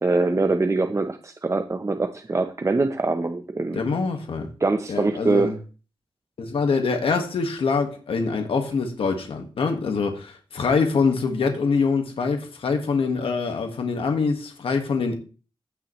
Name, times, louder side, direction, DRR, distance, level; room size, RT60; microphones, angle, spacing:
voice 1, 0.0-3.8 4.6-5.6, right 3 dB, 30° right, 0.7 m, -23 dB
voice 2, 3.7-4.5 4.9-5.5 6.4-15.1, left 4 dB, 85° left, 1.6 m, -24 dB
16.0 x 5.8 x 3.1 m
cardioid pair, 70°, 9 cm